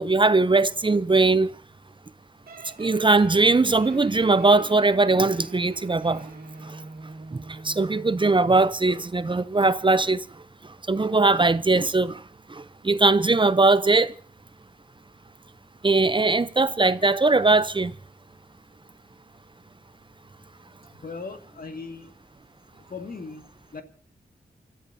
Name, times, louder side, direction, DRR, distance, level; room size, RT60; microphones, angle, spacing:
voice 1, 0.0-1.5 2.8-6.3 6.6-6.8 7.3-10.2 10.6-12.2 12.5-14.1 15.8-17.9, right 3 dB, 30° right, 0.6 m, -20 dB
sound 1, 2.5-8.5, right 3 dB, 70° right, 2.5 m, -43 dB
voice 2, 20.9-22.1 22.7-23.5 23.7-23.8, left 4 dB, 65° left, 1.9 m, -38 dB
28.5 x 13.5 x 2.7 m
cardioid pair, 40°, 16 cm